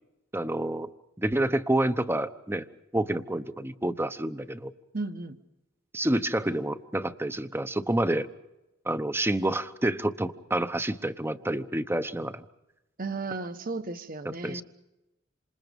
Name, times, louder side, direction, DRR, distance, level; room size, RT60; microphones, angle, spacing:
voice 1, 0.3-0.9 1.2-2.7 2.9-4.7 5.9-8.3 8.8-12.4 14.2-14.6, right 1 dB, 10° right, 11 dB, 0.9 m, -28 dB
voice 2, 4.9-5.4 13.0-14.6, right 3 dB, 45° right, 9 dB, 1.4 m, -34 dB
28.0 x 26.5 x 5.3 m, 0.95 s
head